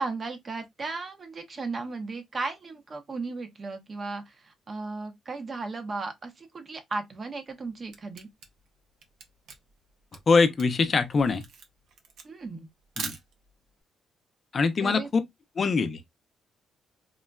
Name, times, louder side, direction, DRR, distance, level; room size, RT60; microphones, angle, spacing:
voice 1, 0.0-8.3 12.2-12.7 14.8-15.1, right 3 dB, 40° right, 0.8 m, -35 dB
Camera, 7.7-13.7, right 5 dB, 80° right, 0.6 m, -42 dB
voice 2, 10.3-11.5 13.0-13.2 14.5-15.2 15.6-16.0, left 4 dB, 40° left, 0.5 m, -23 dB
3.8 x 2.1 x 2.3 m
cardioid pair, 90°, 0 cm